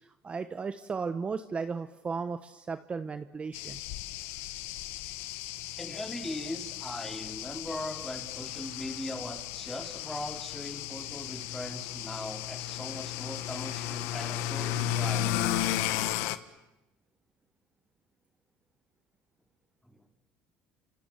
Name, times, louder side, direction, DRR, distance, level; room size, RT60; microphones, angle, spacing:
voice 1, 0.0-3.8, right 5 dB, 30° right, 10 dB, 1.1 m, -35 dB
sound 1, 3.5-16.4, left 12 dB, 80° left, 1.3 m, -34 dB
voice 2, 5.8-15.5 19.8-20.0, left 1 dB, 5° left, 5 dB, 4.1 m, -40 dB
30.0 x 26.5 x 7.4 m, 0.95 s
supercardioid pair, 95°, 4 cm